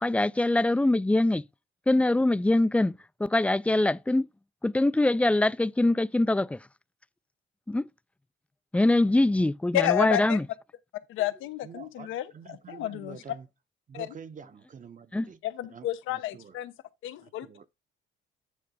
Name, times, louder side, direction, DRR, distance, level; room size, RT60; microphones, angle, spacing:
voice 1, 0.0-1.4 1.9-4.3 4.6-6.6 7.7-7.8 8.7-10.4 15.1-15.3, left 2 dB, 5° left, 0.3 m, -23 dB
voice 2, 9.7-10.4 11.1-13.2 13.9-14.1 15.4-16.7 17.0-17.5, left 13 dB, 90° left, 0.8 m, -30 dB
voice 3, 11.6-13.5 13.9-15.4 15.7-16.6 17.2-17.7, right 6 dB, 40° right, 0.9 m, -47 dB
9.5 x 3.6 x 4.9 m
cardioid pair, 90°, 20 cm